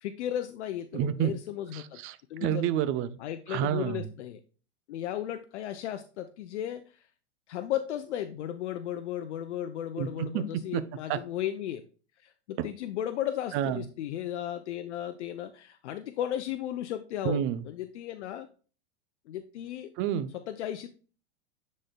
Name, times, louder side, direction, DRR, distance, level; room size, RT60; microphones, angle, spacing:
voice 1, 0.0-2.0 2.3-2.7 3.2-4.4 4.9-7.0 7.5-11.8 12.2-18.5 19.3-19.9 20.5-20.9, left 11 dB, 70° left, 9 dB, 0.7 m, -35 dB
voice 2, 0.9-1.4 1.7-3.2 3.5-4.1 10.0-10.8 11.1-11.2 12.6-12.7 13.5-13.8 17.2-17.6 20.0-20.3, right 10 dB, 35° right, 14 dB, 0.6 m, -29 dB
9.7 x 4.3 x 2.2 m, 0.37 s
hypercardioid pair, 115°, 35 cm